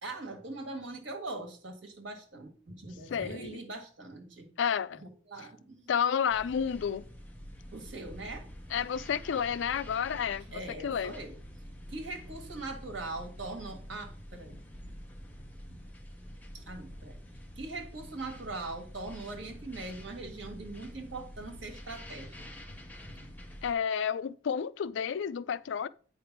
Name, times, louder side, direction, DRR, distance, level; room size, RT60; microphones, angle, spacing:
voice 1, 0.0-4.5 5.0-5.9 7.7-8.5 10.5-11.4 11.9-14.7 15.7-15.8 16.5-17.2 17.6-22.5 23.1-23.3, right 2 dB, 80° right, 1.7 m, -41 dB
voice 2, 3.1-3.6 4.6-5.0 5.9-7.1 8.7-10.4 10.8-11.1 23.6-25.9, left 7 dB, 80° left, 0.4 m, -30 dB
sound 1, 6.3-23.7, equal, 10° left, 0.8 m, -47 dB
8.6 x 3.4 x 5.9 m
head